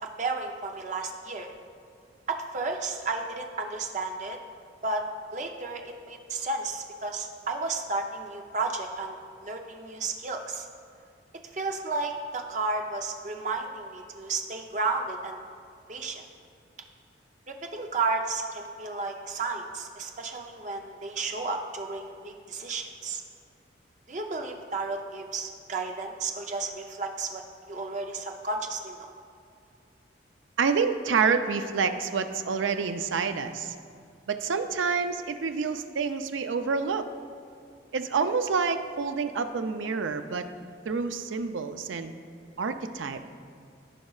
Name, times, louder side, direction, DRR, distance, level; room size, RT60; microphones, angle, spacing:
voice 1, 0.2-1.5 2.3-4.4 4.8-9.2 9.4-10.7 11.5-15.4 15.9-16.2 17.5-23.2 24.1-29.1, right 3 dB, 40° right, 3 dB, 0.6 m, -33 dB
voice 2, 30.6-33.7 34.3-37.1 37.9-40.5 40.8-42.1 42.6-43.2, right 5 dB, 85° right, 9 dB, 0.5 m, -28 dB
14.5 x 5.2 x 2.4 m, 2.4 s
head